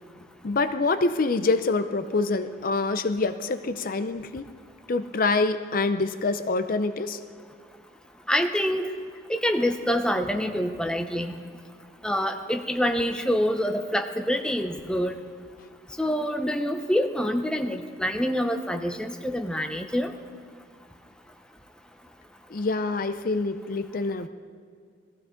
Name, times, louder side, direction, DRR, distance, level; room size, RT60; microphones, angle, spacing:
voice 1, 0.4-4.5 4.9-7.2 9.0-9.1 22.5-24.3, left 3 dB, 45° left, 10 dB, 0.5 m, -26 dB
voice 2, 8.3-8.9 9.3-11.4 12.0-15.2 16.0-20.1, equal, 5° left, 5 dB, 0.7 m, -26 dB
20.5 x 15.0 x 3.8 m, 2.1 s
head